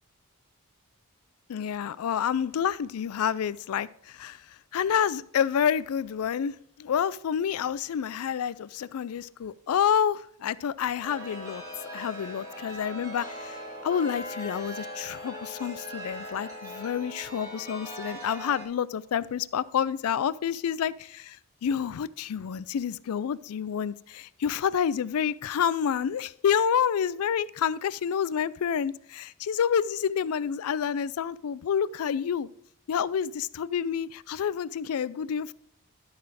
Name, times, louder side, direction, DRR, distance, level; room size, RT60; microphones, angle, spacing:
voice 1, 1.5-4.4 4.7-11.6 11.9-13.6 13.8-21.4 21.6-32.5 32.9-35.5, left 8 dB, 75° left, 19 dB, 0.4 m, -28 dB
Chime, 11.0-18.6, equal, 15° right, 1.9 m, -40 dB
12.0 x 4.2 x 4.7 m, 0.69 s
head